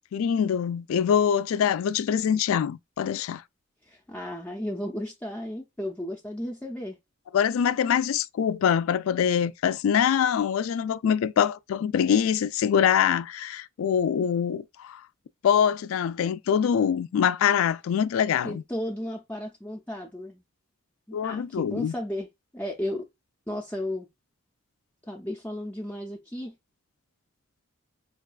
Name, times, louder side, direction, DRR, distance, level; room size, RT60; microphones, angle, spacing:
voice 1, 0.1-3.4 7.3-15.0 15.4-18.6 21.1-21.9, left 8 dB, 85° left, 0.3 m, -24 dB
voice 2, 3.9-7.0 18.4-20.4 21.1-22.3 22.5-23.1 23.5-24.1 25.1-26.5, left 1 dB, 5° left, 0.4 m, -34 dB
4.6 x 2.2 x 2.3 m
head